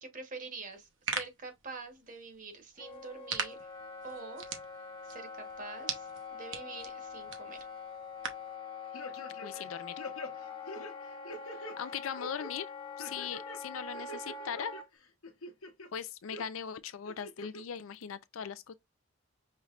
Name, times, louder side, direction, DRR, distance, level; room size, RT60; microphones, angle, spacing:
voice 1, 0.0-3.7 4.0-4.4 4.8-7.6, right 4 dB, 40° right, 1.2 m, -46 dB
sound 1, 0.7-8.5, right 6 dB, 60° right, 0.9 m, -42 dB
Wind instrument woodwind instrument, 2.8-14.9, left 5 dB, 25° left, 0.9 m, -44 dB
sound 2, 8.9-9.7 10.0-11.8 12.2-12.5 13.0-13.6 13.9-14.8 15.2-15.9 16.3-16.4 17.1-17.6 18.0-18.1, left 1 dB, 90° left, 1.0 m, -44 dB
voice 2, 9.4-9.9 11.6-12.7 13.0-14.7 15.9-18.7, left 7 dB, 75° left, 0.4 m, -39 dB
5.5 x 3.1 x 2.4 m
head